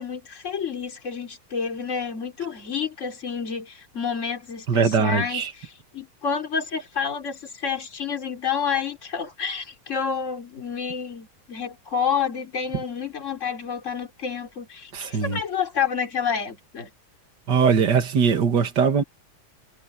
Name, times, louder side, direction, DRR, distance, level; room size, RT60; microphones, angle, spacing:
voice 1, 0.0-16.9, left 6 dB, 35° left, 3.4 m, -29 dB
voice 2, 4.7-5.5 14.9-15.4 17.5-19.0, right 6 dB, 55° right, 2.5 m, -21 dB
omnidirectional pair, 2.3 m